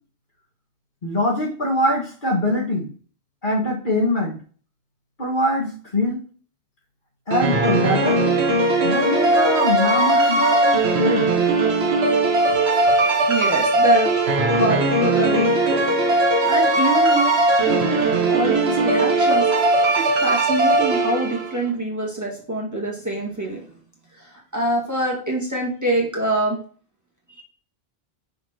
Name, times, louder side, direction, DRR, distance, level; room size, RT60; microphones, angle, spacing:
voice 1, 1.0-2.9 3.4-4.4 5.2-6.2 7.3-8.2 8.8-11.3, left 1 dB, 50° left, -2 dB, 1.9 m, -23 dB
sound 1, 7.3-21.6, right 2 dB, 80° right, 1.3 m, -19 dB
voice 2, 13.3-14.1 14.5-15.8 16.5-17.4 17.6-19.5 20.0-23.6 24.2-26.6 27.4-27.5, right 2 dB, 15° right, -3 dB, 1.8 m, -25 dB
6.1 x 5.9 x 2.9 m, 0.43 s
omnidirectional pair, 1.1 m